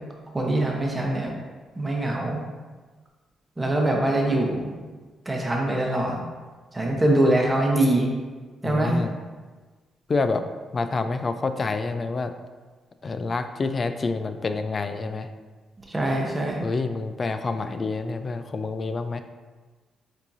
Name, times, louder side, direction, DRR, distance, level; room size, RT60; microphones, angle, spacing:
voice 1, 0.3-1.3 1.8-2.4 3.6-4.7 5.3-6.2 6.7-8.1 8.6-9.0 15.9-16.7, right 1 dB, 20° right, -1 dB, 0.9 m, -23 dB
voice 2, 8.6-9.2 10.1-10.4 10.7-12.3 13.0-15.3 16.6-19.2, left 3 dB, 40° left, 9 dB, 0.3 m, -27 dB
7.2 x 2.7 x 2.7 m, 1.3 s
cardioid pair, 85°, 0 cm